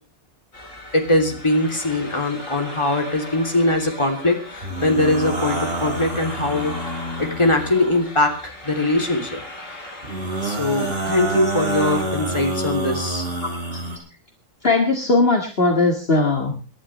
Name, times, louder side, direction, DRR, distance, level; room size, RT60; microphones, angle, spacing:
sound 1, 0.5-11.2, left 1 dB, 75° left, 4.5 m, -38 dB
voice 1, 0.9-9.4 10.4-13.3, left 1 dB, 20° left, 2 dB, 3.2 m, -21 dB
sound 2, 4.6-8.0 10.0-14.0, right 2 dB, 45° right, 3.8 m, -27 dB
voice 2, 14.6-16.7, left 3 dB, 45° left, 2 dB, 2.1 m, -19 dB
28.0 x 11.0 x 3.3 m, 0.37 s
omnidirectional pair, 1.4 m